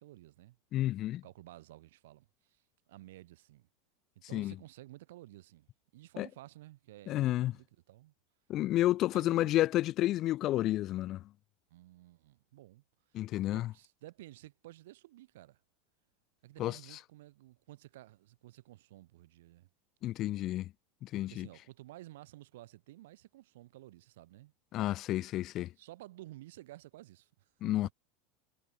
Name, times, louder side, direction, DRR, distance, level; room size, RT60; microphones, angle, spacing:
voice 1, 0.0-0.6 1.2-3.7 4.3-8.1 9.1-9.6 11.7-12.8 13.3-15.6 16.4-19.7 21.3-24.5 25.8-27.9, right 16 dB, 65° right, 7.2 m, -53 dB
voice 2, 0.7-1.2 4.3-4.5 6.2-6.3 7.1-7.5 8.5-11.3 13.1-13.7 16.6-17.0 20.0-20.7 21.0-21.5 24.7-25.7 27.6-27.9, left 15 dB, 45° left, 0.3 m, -31 dB
figure-of-eight pair, 80°, 0 cm